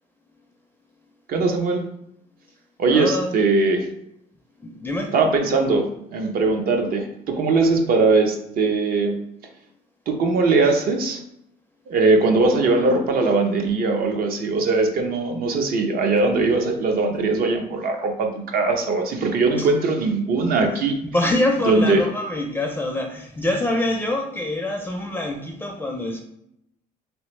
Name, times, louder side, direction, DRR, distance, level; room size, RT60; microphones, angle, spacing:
voice 1, 1.3-1.9 2.8-3.9 5.1-9.2 10.1-11.2 11.9-20.9 21.6-22.0, right 3 dB, 60° right, 4 dB, 0.7 m, -20 dB
voice 2, 2.8-3.3 4.6-5.1 19.6-19.7 21.1-26.2, left 1 dB, 10° left, 1 dB, 0.4 m, -25 dB
3.1 x 3.0 x 3.2 m, 0.78 s
cardioid pair, 110°, 17 cm